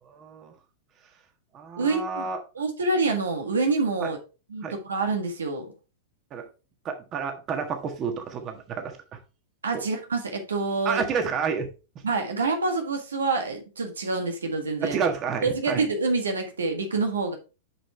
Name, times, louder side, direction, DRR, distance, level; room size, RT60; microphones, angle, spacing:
voice 1, 0.1-0.5 1.5-2.4 4.0-4.1 4.6-4.7 6.3-6.4 6.8-9.0 10.8-11.7 11.9-12.0 14.8-15.8, right 6 dB, 35° right, 1.5 m, -29 dB
voice 2, 1.8-2.3 2.5-4.2 4.5-5.7 9.6-11.0 12.0-15.0 15.4-17.3, right 3 dB, 85° right, 1.6 m, -27 dB
7.5 x 5.1 x 3.4 m
hypercardioid pair, 105°, 0 cm